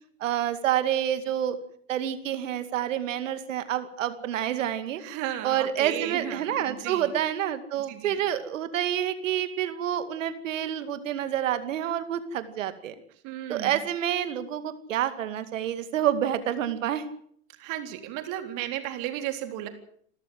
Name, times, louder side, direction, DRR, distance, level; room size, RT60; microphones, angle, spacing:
voice 1, 0.2-1.6 1.9-5.0 5.4-12.9 13.5-17.1, right 10 dB, 75° right, 11 dB, 2.4 m, -28 dB
voice 2, 5.0-7.1 7.8-8.2 13.2-13.8 17.6-19.7, right 12 dB, 50° right, 6 dB, 3.9 m, -34 dB
28.5 x 13.5 x 7.8 m, 0.64 s
hypercardioid pair, 100°, 39 cm